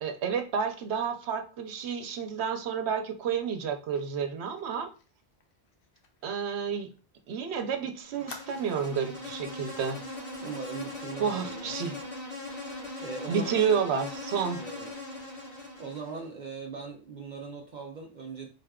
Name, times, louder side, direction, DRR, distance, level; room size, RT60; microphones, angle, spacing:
voice 1, 0.0-4.9 6.2-6.9 7.3-10.0 11.2-12.0 13.3-14.6, right 6 dB, 90° right, 7 dB, 0.9 m, -30 dB
Fire, 4.0-7.4 7.7-7.8 8.3-9.2 9.6-9.8 10.1-10.4, left 4 dB, 65° left, 0.8 m, -51 dB
Insect, 8.0-16.3, left 2 dB, 90° left, 2.0 m, -40 dB
voice 2, 10.4-11.8 12.6-13.7 14.6-14.9 15.8-18.5, right 5 dB, 55° right, 1 dB, 0.6 m, -40 dB
4.1 x 3.5 x 2.3 m, 0.36 s
omnidirectional pair, 1.1 m